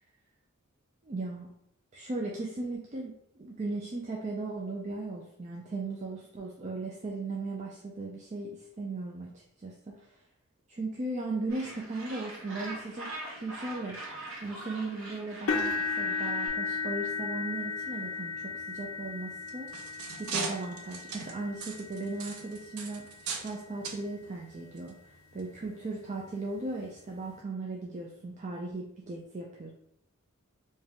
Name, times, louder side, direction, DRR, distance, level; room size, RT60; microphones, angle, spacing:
voice 1, 1.0-1.5 1.9-10.2 10.7-14.0 14.4-19.7 20.2-29.7, right 2 dB, 30° right, -1 dB, 0.4 m, -37 dB
Gull seagull, 11.5-16.5, right 2 dB, 65° right, 1.3 m, -43 dB
sound 1, 15.5-23.5 24.1-24.4 24.8-24.9 26.3-26.4, left 4 dB, 65° left, 0.5 m, -35 dB
sound 2, 19.3-23.6 23.8-24.0 24.8-24.9 25.4-25.5, right 5 dB, 85° right, 0.6 m, -38 dB
3.6 x 2.7 x 3.5 m, 0.75 s
head